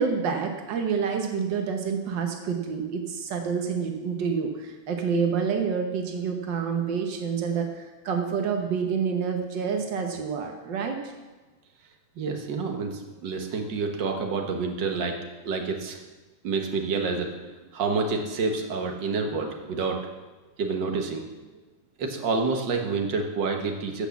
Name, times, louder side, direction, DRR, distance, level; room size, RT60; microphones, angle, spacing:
voice 1, 0.0-11.1, right 6 dB, 85° right, 4 dB, 1.0 m, -28 dB
voice 2, 12.2-15.2 15.4-16.0 16.4-17.3 17.7-20.0 20.6-21.2 22.0-24.1, right 4 dB, 55° right, 3 dB, 1.3 m, -28 dB
14.5 x 6.2 x 7.1 m, 1.2 s
omnidirectional pair, 3.6 m